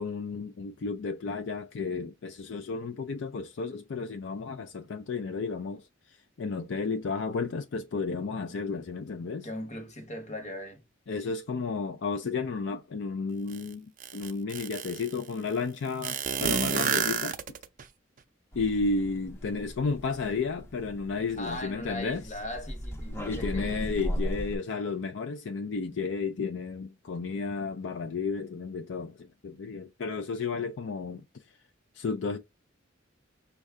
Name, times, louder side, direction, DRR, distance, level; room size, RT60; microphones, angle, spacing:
voice 1, 0.0-9.5 11.1-17.4 18.5-22.2 23.2-31.5 31.9-32.4, left 4 dB, 65° left, 0.4 m, -33 dB
voice 2, 9.4-10.8 21.4-23.8, left 1 dB, 35° left, 1.0 m, -39 dB
sound 1, 13.5-13.6 14.0-15.1 16.0-17.8, right 7 dB, 40° right, 0.4 m, -29 dB
sound 2, 18.5-24.6, equal, 10° left, 0.5 m, -37 dB
6.2 x 2.3 x 3.5 m
head